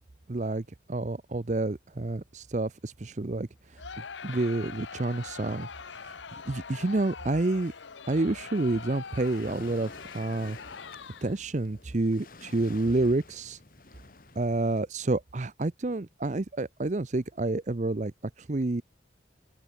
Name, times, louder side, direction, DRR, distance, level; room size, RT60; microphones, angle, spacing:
voice 1, 0.3-3.8 4.2-6.2 6.5-7.7 8.1-10.6 11.2-13.6 14.4-18.1 18.4-18.8, right 2 dB, 40° right, 0.6 m, -29 dB
Crowd, 3.8-11.5, left 5 dB, 80° left, 0.9 m, -43 dB
Waves surf, 8.5-14.8, left 3 dB, 50° left, 1.7 m, -51 dB
open air
head